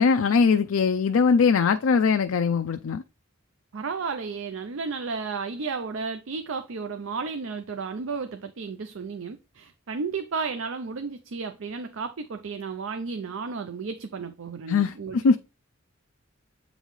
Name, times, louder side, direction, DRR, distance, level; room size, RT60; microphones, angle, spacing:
voice 1, 0.0-3.0 14.7-15.4, left 5 dB, 80° left, 0.4 m, -21 dB
voice 2, 3.7-15.4, right 4 dB, 70° right, 0.5 m, -33 dB
8.1 x 3.9 x 3.1 m
head